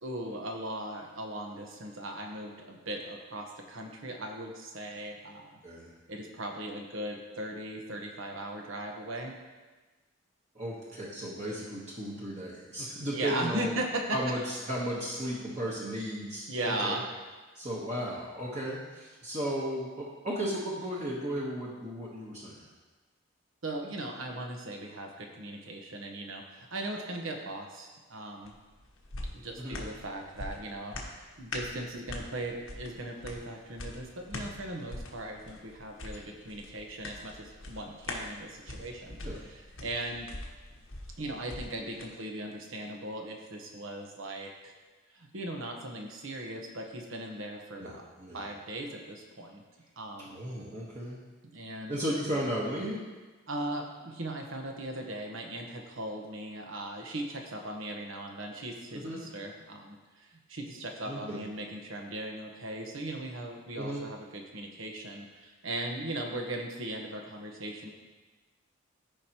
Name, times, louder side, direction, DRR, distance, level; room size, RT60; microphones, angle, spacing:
voice 1, 0.0-5.6 6.1-9.3 13.1-14.2 16.5-17.0 23.6-28.5 29.3-40.3 41.2-44.7 45.1-48.0 48.3-49.6 50.0-50.4 51.5-51.9 53.5-67.9, right 1 dB, 85° right, 2 dB, 1.2 m, -38 dB
voice 2, 10.5-13.7 14.1-17.0 17.5-22.6 29.6-29.8 39.2-39.4 47.8-48.4 50.2-51.2 51.9-53.0 59.0-59.2 61.0-61.4 63.7-64.0, equal, 35° right, -6 dB, 1.2 m, -35 dB
sound 1, 28.4-42.1 42.5-42.6, left 2 dB, 90° left, 1.2 m, -43 dB
13.5 x 5.2 x 3.0 m, 1.3 s
head